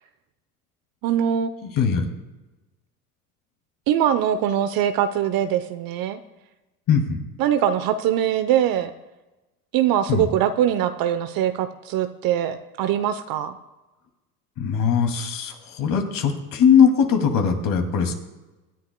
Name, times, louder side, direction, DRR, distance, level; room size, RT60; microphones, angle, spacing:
voice 1, 1.0-1.5 3.9-6.2 7.4-8.9 9.7-13.6, right 10 dB, 50° right, 9 dB, 0.8 m, -22 dB
voice 2, 1.6-2.1 6.9-7.2 10.1-10.3 14.6-18.1, left 7 dB, 45° left, 4 dB, 2.5 m, -20 dB
24.5 x 10.5 x 2.2 m, 1.1 s
hypercardioid pair, 85°, 45 cm